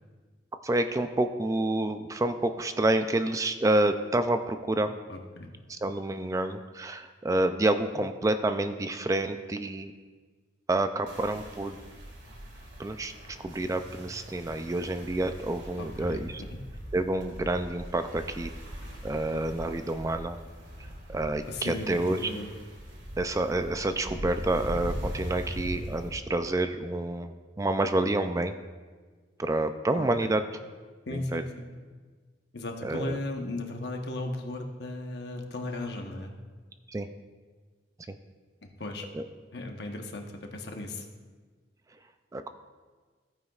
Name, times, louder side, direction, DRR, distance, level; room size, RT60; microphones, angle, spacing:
voice 1, 0.6-4.9 5.7-9.9 10.7-11.8 12.8-13.1 13.4-16.4 16.9-18.5 19.0-20.4 21.1-22.2 23.2-28.5 29.4-30.4 31.1-31.4 32.8-33.2 36.9-37.1 39.2-39.3 42.3-42.5, right 2 dB, 20° right, 8 dB, 0.3 m, -28 dB
voice 2, 5.1-5.5 15.8-16.6 21.5-22.5 29.9-30.3 31.1-31.5 32.5-36.3 38.6-39.1 39.5-41.1, left 2 dB, 60° left, 3 dB, 1.1 m, -36 dB
sound 1, 11.1-26.1, equal, 85° right, 2.0 m, -41 dB
15.0 x 9.2 x 2.4 m, 1.4 s
head